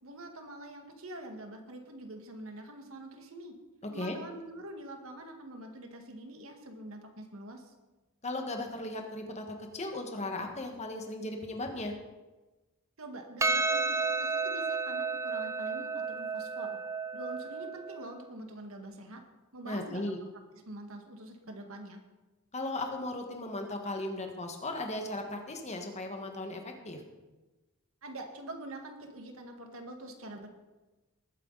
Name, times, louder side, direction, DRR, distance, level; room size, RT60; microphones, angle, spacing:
voice 1, 0.0-3.5 3.9-7.7 13.0-16.8 17.1-19.2 19.5-20.1 20.7-22.0 28.0-30.5, right 1 dB, 85° right, 4 dB, 1.9 m, -45 dB
voice 2, 8.2-11.9 19.7-20.2 22.5-27.0, left 2 dB, 35° left, 3 dB, 1.7 m, -37 dB
Percussion, 13.4-18.0, right 4 dB, 15° right, 0.5 m, -32 dB
19.5 x 9.3 x 4.1 m, 1.2 s
head